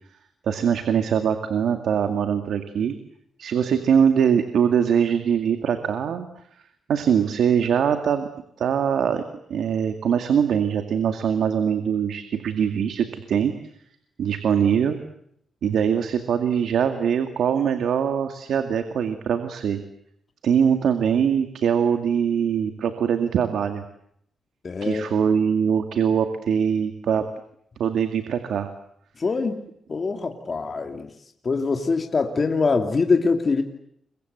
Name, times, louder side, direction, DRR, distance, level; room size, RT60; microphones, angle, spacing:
voice 1, 0.4-2.9 3.4-6.3 6.9-8.3 8.6-9.2 9.5-13.5 14.2-15.0 15.6-19.8 20.4-23.8 24.8-27.3 27.8-28.7, right 7 dB, 80° right, 7 dB, 2.2 m, -22 dB
voice 2, 24.6-25.1 29.2-29.6 29.9-31.1 31.4-33.6, left 4 dB, 40° left, 4 dB, 2.8 m, -23 dB
29.5 x 23.5 x 8.1 m, 0.71 s
cardioid pair, 110°, 0 cm